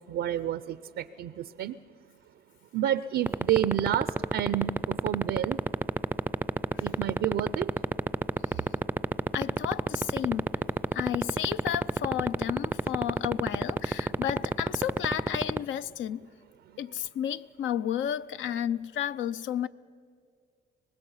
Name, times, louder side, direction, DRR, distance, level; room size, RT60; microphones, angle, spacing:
voice 1, 0.1-1.7 2.7-5.6 6.8-7.7, right 11 dB, 75° right, 0.5 m, -29 dB
sound 1, 3.3-15.6, right 2 dB, 10° right, 0.4 m, -24 dB
voice 2, 9.3-16.3 16.8-19.7, left 10 dB, 75° left, 0.6 m, -32 dB
24.5 x 19.5 x 5.6 m
cardioid pair, 90°, 20 cm